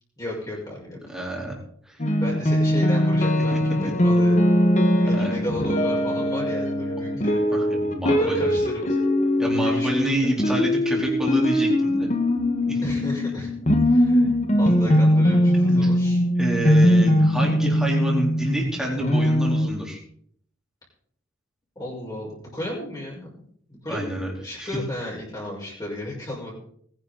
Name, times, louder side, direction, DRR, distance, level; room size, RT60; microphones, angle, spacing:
voice 1, 0.2-1.0 2.2-4.4 5.0-7.4 8.1-9.0 9.6-10.3 12.8-13.5 13.8-16.2 21.8-23.3 23.8-26.5, left 1 dB, 20° left, -5 dB, 5.7 m, -34 dB
voice 2, 1.1-1.6 1.9-2.0 3.3-3.6 5.1-5.3 7.5-8.5 9.4-12.1 12.7-12.8 15.7-15.9 16.4-20.0 23.9-24.3 24.6-24.8, right 1 dB, 5° right, -2 dB, 4.2 m, -28 dB
sound 1, 2.0-19.7, equal, 35° left, 1.7 m, -21 dB
20.5 x 10.5 x 4.2 m, 0.64 s
head